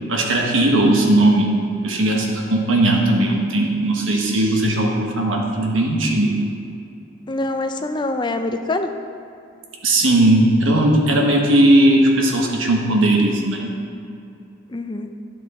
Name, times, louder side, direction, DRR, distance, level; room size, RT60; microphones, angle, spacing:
voice 1, 0.1-1.6 1.8-6.4 9.8-13.7, right 1 dB, 80° right, 0 dB, 1.2 m, -17 dB
voice 2, 7.3-8.9 14.7-15.1, left 2 dB, 25° left, 6 dB, 0.4 m, -24 dB
10.0 x 6.1 x 4.2 m, 2.5 s
head